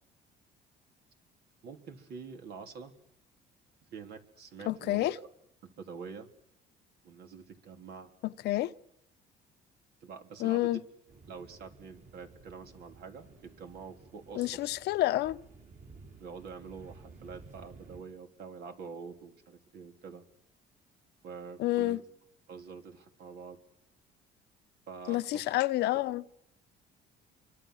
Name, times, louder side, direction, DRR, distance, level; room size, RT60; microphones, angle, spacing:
voice 1, 1.6-2.9 3.9-5.3 5.6-6.3 7.0-8.1 10.0-10.8 11.3-14.6 16.2-20.2 21.2-22.0 22.5-23.6 24.9-25.4, right 5 dB, 70° right, 3.5 m, -46 dB
voice 2, 4.7-5.1 8.2-8.7 10.4-10.8 14.3-15.4 21.6-22.0 25.1-26.2, left 16 dB, 80° left, 0.9 m, -29 dB
sound 1, 11.1-18.0, right 4 dB, 50° right, 7.0 m, -54 dB
27.5 x 24.5 x 6.4 m
cardioid pair, 110°, 17 cm